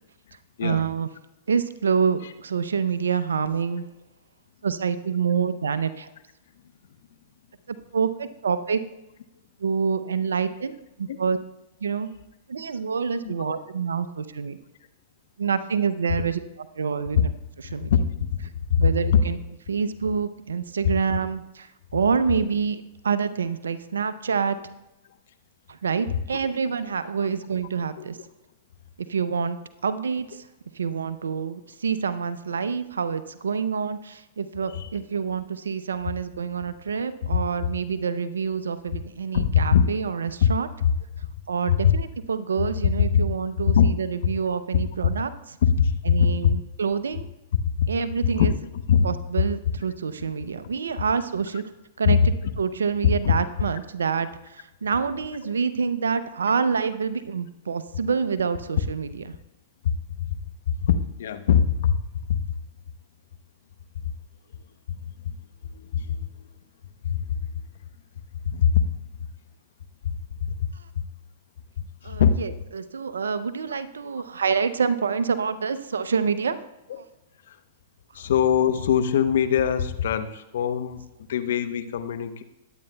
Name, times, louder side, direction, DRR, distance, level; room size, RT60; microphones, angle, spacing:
voice 1, 0.6-1.1 1.5-3.9 4.6-6.1 7.7-8.8 9.6-11.4 11.8-12.1 12.5-14.6 15.4-17.3 17.7-17.9 18.8-19.4 19.7-24.6 25.7-28.2 29.1-30.5 30.7-40.7 41.5-45.6 46.0-47.3 47.9-48.5 49.0-51.6 52.0-59.2 72.0-76.6 77.0-77.1, right 6 dB, 80° right, 13 dB, 0.6 m, -27 dB
voice 2, 17.9-19.2 34.7-34.9 39.3-39.8 40.4-40.5 40.8-40.9 41.7-41.9 43.1-43.2 43.7-43.9 45.6-46.5 47.6-47.9 48.4-48.5 48.9-49.1 49.4-49.5 52.1-52.2 53.2-53.3 59.8-60.4 60.7-62.0 62.3-62.4 64.9-65.0 65.2-65.4 65.6-66.5 67.0-67.4 68.4-68.9 70.0-71.1 71.8-72.4 77.5-77.6 78.1-81.0 81.3-82.4, left 8 dB, 65° left, 10 dB, 0.8 m, -22 dB
21.0 x 8.9 x 2.3 m, 0.92 s
hypercardioid pair, 105°, 0 cm